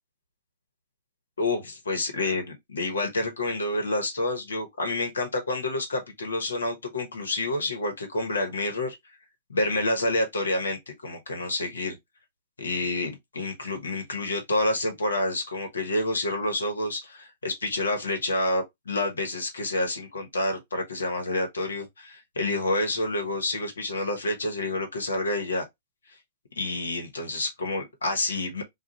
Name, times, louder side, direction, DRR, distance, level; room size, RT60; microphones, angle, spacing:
voice 1, 1.4-8.9 9.5-12.0 12.6-25.7 26.6-28.6, left 2 dB, 85° left, 1.1 m, -28 dB
2.5 x 2.3 x 4.1 m
hypercardioid pair, 115°, 0 cm